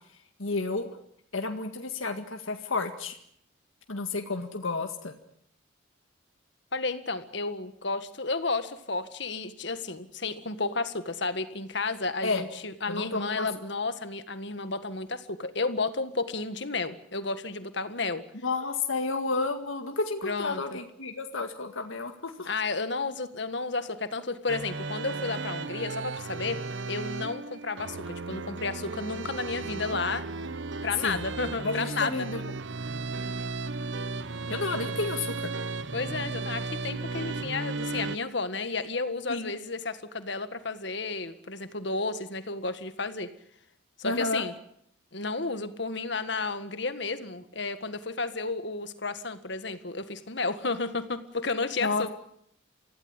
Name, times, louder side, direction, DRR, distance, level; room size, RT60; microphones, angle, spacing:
voice 1, 0.1-1.0 1.3-3.2 3.9-5.1 12.2-12.4 12.9-13.5 18.4-22.5 31.0-31.2 31.6-32.4 34.5-35.5 39.3-39.5 44.0-44.5 51.8-52.1, left 3 dB, 80° left, 5 dB, 1.9 m, -31 dB
voice 2, 6.7-18.2 20.2-20.6 22.5-26.6 26.9-30.3 30.8-32.1 35.9-43.3 44.0-44.5 45.1-52.1, left 3 dB, 55° left, 11 dB, 1.8 m, -32 dB
sound 1, 24.5-38.2, right 3 dB, 65° right, 0.9 m, -35 dB
25.0 x 16.0 x 9.8 m, 0.71 s
head